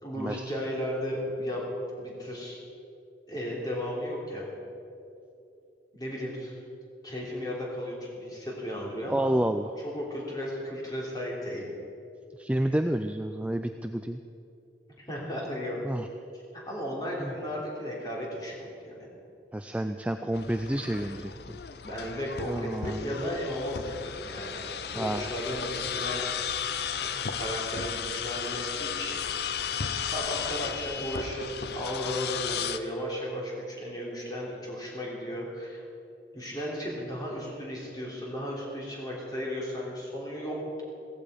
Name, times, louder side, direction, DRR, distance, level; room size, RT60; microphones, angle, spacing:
voice 1, 0.0-1.7 2.0-2.6 3.3-4.4 5.9-6.5 7.0-9.3 9.8-11.7 15.1-15.8 16.3-19.1 21.8-29.2 29.5-35.8 36.3-40.8, equal, 20° left, -4 dB, 3.4 m, -35 dB
voice 2, 9.1-9.7 12.4-14.2 15.8-16.1 17.2-17.3 19.5-21.3 22.5-23.1 24.9-25.2, right 1 dB, 5° right, 7 dB, 0.3 m, -29 dB
sound 1, 20.3-32.8, left 7 dB, 60° left, 0.6 m, -34 dB
16.0 x 15.0 x 5.1 m, 2.7 s
head